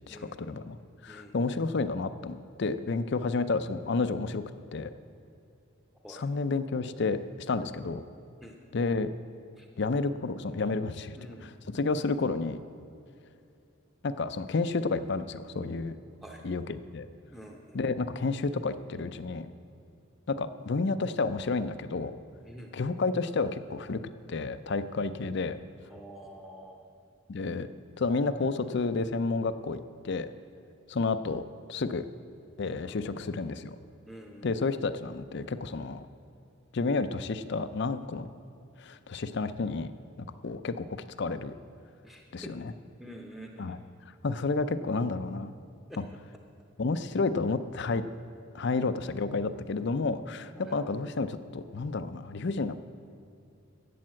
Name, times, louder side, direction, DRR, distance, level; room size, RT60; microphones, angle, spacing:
voice 1, 0.1-4.4 4.7-4.9 6.1-8.0 8.7-9.1 9.8-11.2 11.4-12.6 14.0-16.0 16.4-17.1 17.7-19.5 20.3-22.2 22.7-24.0 24.3-25.6 27.3-27.7 28.0-30.3 30.9-31.4 31.7-32.1 32.6-33.8 34.4-36.0 36.7-38.3 38.8-39.9 40.4-40.9 41.2-41.6 42.3-42.7 43.6-43.8 44.2-45.5 46.0-46.1 46.8-48.0 48.5-52.8, left 3 dB, 60° left, 12 dB, 0.5 m, -30 dB
voice 2, 11.1-11.5 16.2-16.4 17.3-17.8 22.4-22.7 25.9-26.8 32.6-33.2 34.1-34.5 42.0-42.7 43.0-43.8 45.9-46.0 50.6-50.8, equal, ahead, 1 dB, 0.8 m, -47 dB
12.0 x 8.5 x 7.6 m, 2.7 s
head